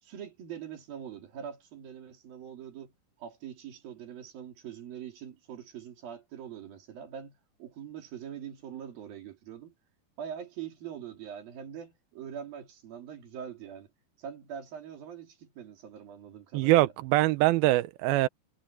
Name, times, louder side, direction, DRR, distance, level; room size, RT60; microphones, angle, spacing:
voice 1, 0.0-2.9 3.2-9.7 10.2-13.9 14.2-16.9, right 9 dB, 65° right, 4.7 m, -43 dB
voice 2, 16.5-18.3, right 17 dB, 80° right, 2.4 m, -23 dB
omnidirectional pair, 4.6 m